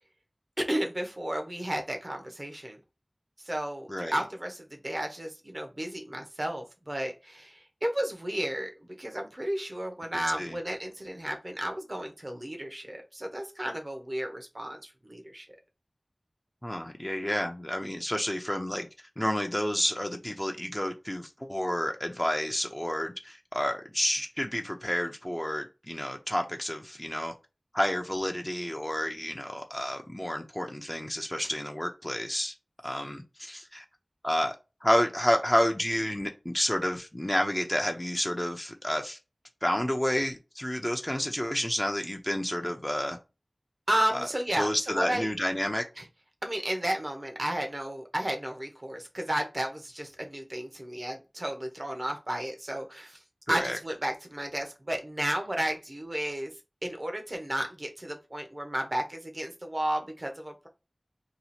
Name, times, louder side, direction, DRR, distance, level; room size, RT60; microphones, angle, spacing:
voice 1, 0.6-2.8 3.4-8.7 9.0-15.5 43.9-45.3 46.0-46.1 46.4-53.2 53.5-56.5 56.8-60.7, right 1 dB, 45° right, 0.8 m, -33 dB
voice 2, 3.9-4.2 10.4-10.6 16.6-18.9 19.2-27.3 27.7-32.5 32.8-33.8 34.2-34.6 34.8-39.2 39.6-43.2 44.1-44.3 44.6-45.8 53.5-53.8, equal, 20° left, 0.5 m, -30 dB
2.8 x 2.4 x 4.1 m
wide cardioid pair, 50°, 0 cm